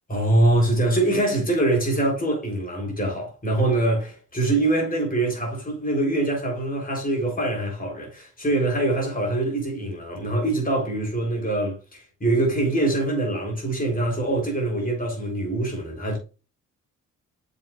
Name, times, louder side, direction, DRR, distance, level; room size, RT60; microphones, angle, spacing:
voice 1, 0.1-16.2, right 2 dB, 25° left, 3.8 m, -24 dB
7.3 x 5.2 x 2.5 m
cardioid pair, 75°, 33 cm